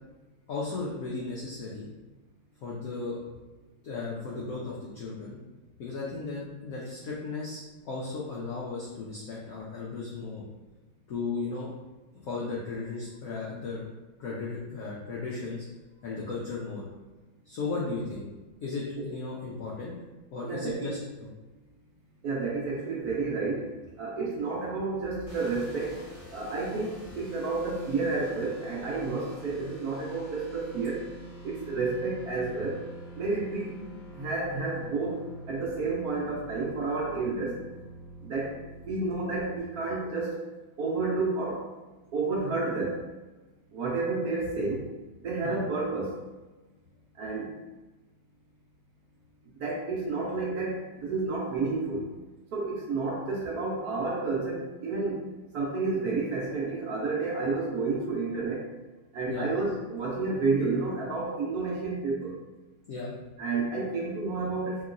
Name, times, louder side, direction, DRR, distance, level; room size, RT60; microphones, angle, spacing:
voice 1, 0.5-1.9 2.6-3.2 3.8-5.4 5.8-10.4 11.1-11.7 12.2-13.8 14.2-15.6 16.0-16.8 17.5-18.3 18.6-19.9 20.3-21.3 45.4-45.6 59.3-59.5 62.9-63.1, left 3 dB, 80° left, -5 dB, 0.8 m, -35 dB
voice 2, 20.5-20.9 22.2-23.7 24.0-26.0 26.3-31.0 31.4-32.8 33.1-33.8 34.1-35.2 35.5-37.6 38.2-38.6 38.9-40.4 40.8-41.6 42.1-43.0 43.7-44.8 45.2-46.2 47.2-47.5 49.5-52.1 52.5-55.2 55.5-58.7 59.1-62.3 63.4-64.8, right 3 dB, 70° right, -3 dB, 1.0 m, -30 dB
sound 1, 25.3-39.6, right 1 dB, 25° right, 1.0 m, -46 dB
3.0 x 2.9 x 2.4 m, 1.2 s
omnidirectional pair, 2.1 m